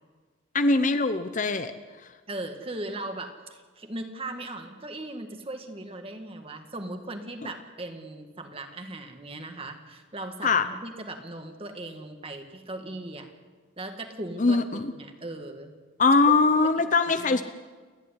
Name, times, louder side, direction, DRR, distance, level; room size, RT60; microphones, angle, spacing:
voice 1, 0.5-1.7 10.4-10.7 14.4-14.9 16.0-17.4, left 3 dB, 40° left, 10 dB, 0.8 m, -22 dB
voice 2, 2.3-13.3 13.8-15.7 16.3-16.4 17.2-17.4, right 2 dB, 30° right, 5 dB, 1.8 m, -38 dB
29.0 x 11.0 x 9.9 m, 1.4 s
head